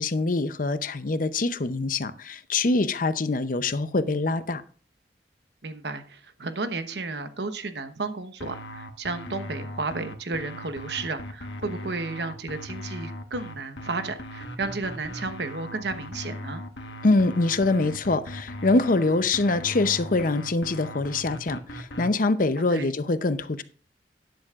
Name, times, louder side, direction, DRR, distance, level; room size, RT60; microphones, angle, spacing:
voice 1, 0.0-4.6 17.0-23.6, left 3 dB, 50° left, 0.7 m, -24 dB
voice 2, 5.6-16.6 22.7-22.9, right 3 dB, 70° right, 1.1 m, -33 dB
sound 1, 8.4-22.1, equal, 85° left, 1.4 m, -39 dB
12.0 x 10.5 x 2.5 m
head